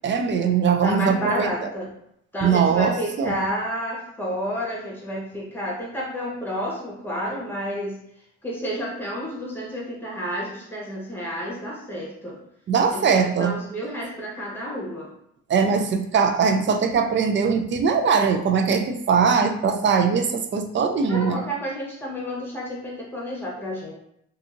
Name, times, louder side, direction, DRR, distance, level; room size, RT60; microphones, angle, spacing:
voice 1, 0.0-1.5 2.4-3.3 12.7-13.6 15.5-21.4, right 6 dB, 40° right, 6 dB, 0.4 m, -21 dB
voice 2, 0.8-1.9 2.3-8.0 8.4-12.4 12.9-15.1 21.1-23.9, equal, 5° left, -4 dB, 1.1 m, -30 dB
2.7 x 2.5 x 2.5 m, 0.74 s
cardioid pair, 90°, 30 cm